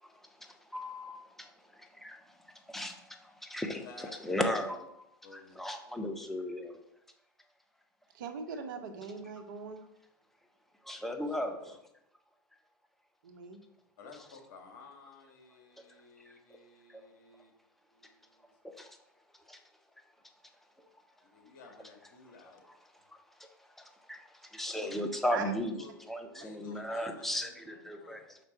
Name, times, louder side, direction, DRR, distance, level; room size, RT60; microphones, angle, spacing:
voice 1, 0.0-2.1 2.7-2.9 3.2-6.8 10.8-11.6 16.3-16.4 16.9-17.0 18.6-19.0 19.5-19.6 22.6-22.7 23.1-28.4, left 1 dB, ahead, 5 dB, 0.9 m, -37 dB
voice 2, 5.2-5.6 11.1-11.8 14.0-17.5 17.9-18.5 21.3-22.6 25.7-25.9 26.3-28.2, left 4 dB, 60° left, 2 dB, 2.0 m, -54 dB
voice 3, 8.1-9.8 13.2-13.6 24.8-25.0 25.3-25.4, right 5 dB, 65° right, 6 dB, 1.2 m, -41 dB
6.0 x 5.1 x 4.4 m, 0.78 s
hypercardioid pair, 95°, 11 cm